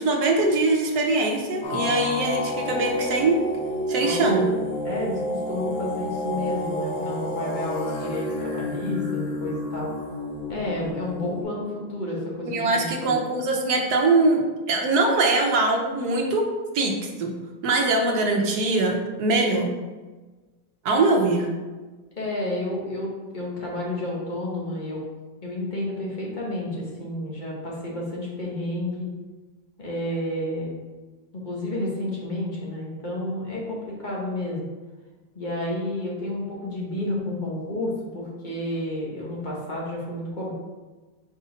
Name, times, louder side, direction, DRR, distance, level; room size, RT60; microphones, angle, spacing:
voice 1, 0.0-3.4 3.9-4.4 12.5-16.4 16.7-17.3 17.6-19.7 20.8-21.5, right 2 dB, 70° right, 1 dB, 1.4 m, -22 dB
sound 1, 1.6-11.4, left 1 dB, 75° left, 1.7 m, -30 dB
voice 2, 4.0-4.5 4.8-9.9 10.5-13.1 22.2-25.0 25.4-29.1 29.8-30.7 31.4-34.6 35.3-40.5, left 1 dB, 30° left, -4 dB, 1.4 m, -30 dB
4.7 x 4.0 x 5.0 m, 1.3 s
omnidirectional pair, 1.8 m